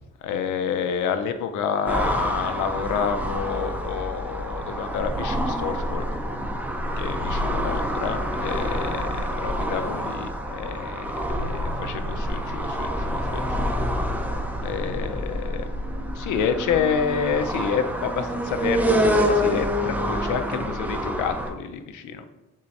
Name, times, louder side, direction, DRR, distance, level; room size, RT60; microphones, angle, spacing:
voice 1, 0.2-6.0 7.0-11.1 11.4-13.7 14.6-15.7 15.9-22.2, left 7 dB, 80° left, 9 dB, 0.5 m, -29 dB
sound 1, 1.9-21.5, equal, 5° right, 0.5 m, -28 dB
sound 2, 3.0-17.5, left 1 dB, 65° right, 1.6 m, -33 dB
3.7 x 3.2 x 4.0 m, 0.99 s
cardioid pair, 90°, 30 cm